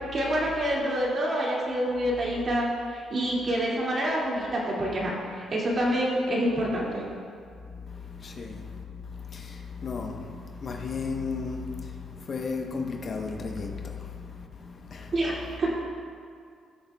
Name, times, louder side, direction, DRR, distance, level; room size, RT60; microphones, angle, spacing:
voice 1, 0.1-7.0 15.1-15.7, equal, 45° right, 2.3 m, -27 dB
voice 2, 7.7-15.1, left 4 dB, 45° left, 0.9 m, -35 dB
16.5 x 6.6 x 2.3 m
cardioid pair, 90°, 0 cm